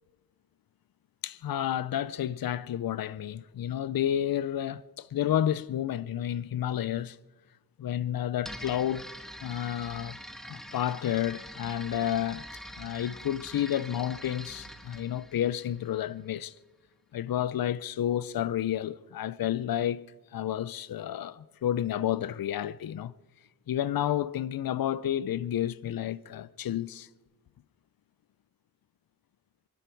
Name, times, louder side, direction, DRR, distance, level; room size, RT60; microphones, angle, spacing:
voice 1, 1.2-7.2 7.8-9.1 9.4-10.2 10.4-12.4 12.8-16.5 17.1-20.1 20.3-23.1 23.7-27.1, left 11 dB, 70° left, 0.5 m, -30 dB
sound 1, 8.4-16.2, equal, ahead, 1.6 m, -45 dB
24.5 x 12.0 x 4.5 m
cardioid pair, 60°, 36 cm